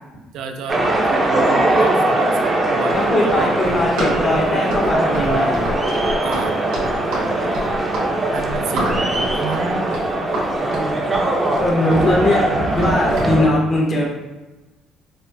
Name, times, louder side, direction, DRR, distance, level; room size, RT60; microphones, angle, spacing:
voice 1, 0.3-3.8 6.2-6.6 8.3-10.0 11.3-11.6, right 5 dB, 70° right, 5 dB, 0.3 m, -30 dB
sound 1, 0.7-13.5, right 1 dB, 20° right, 0.6 m, -20 dB
Run, 2.8-13.3, equal, 90° right, 1.3 m, -28 dB
voice 2, 2.9-5.6 11.6-12.5 12.7-14.1, left 1 dB, 40° left, -3 dB, 1.0 m, -20 dB
5.3 x 2.0 x 2.5 m, 1.1 s
cardioid pair, 105°, 0 cm